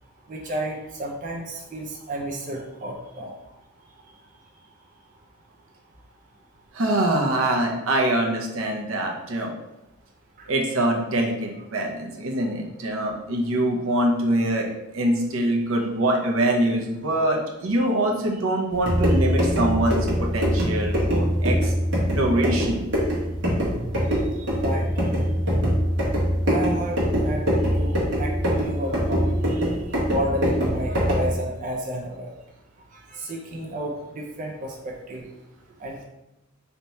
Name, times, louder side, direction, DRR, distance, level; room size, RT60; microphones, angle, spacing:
voice 1, 0.3-3.3 10.4-10.5 19.1-19.2 24.4-24.9 26.5-27.5 27.7-29.8 30.0-32.3 32.9-35.3 35.8-36.0, right 1 dB, 40° right, 0 dB, 0.5 m, -32 dB
voice 2, 6.7-9.5 10.5-21.7 22.1-22.8, right 1 dB, 85° right, 1 dB, 0.7 m, -24 dB
sound 1, 18.7-31.3, equal, 60° right, 1.3 m, -23 dB
3.4 x 2.8 x 4.1 m, 0.92 s
head